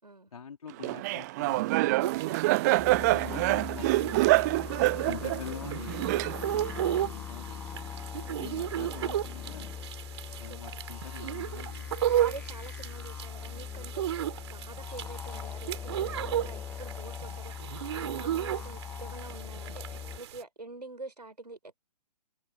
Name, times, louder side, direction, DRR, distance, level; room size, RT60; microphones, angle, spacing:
voice 1, 0.3-2.0 2.3-4.5 5.0-7.9 8.4-9.9 10.4-12.2, left 6 dB, 60° left, 3.7 m, -45 dB
Laughter, 0.8-6.7, right 20 dB, 25° right, 0.8 m, -26 dB
sound 1, 2.0-20.4, right 11 dB, 40° right, 3.5 m, -35 dB
sound 2, 2.8-20.2, left 8 dB, 5° left, 0.6 m, -41 dB
voice 2, 4.8-5.2 8.2-8.7 10.5-10.9 12.2-21.9, right 2 dB, 80° right, 5.8 m, -47 dB
figure-of-eight pair, 130°, 21 cm